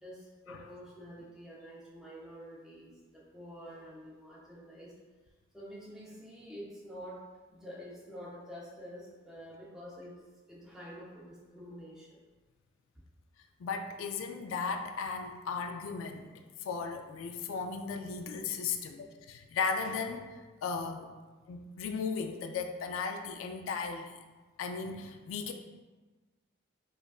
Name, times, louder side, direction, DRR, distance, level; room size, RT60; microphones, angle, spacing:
voice 1, 0.0-4.9 5.5-10.2 10.5-12.2, equal, 5° right, -6 dB, 0.6 m, -48 dB
voice 2, 13.6-20.3 20.6-21.2 21.5-24.1 24.6-25.5, left 5 dB, 85° left, 5 dB, 0.3 m, -36 dB
5.0 x 2.4 x 2.3 m, 1.3 s
head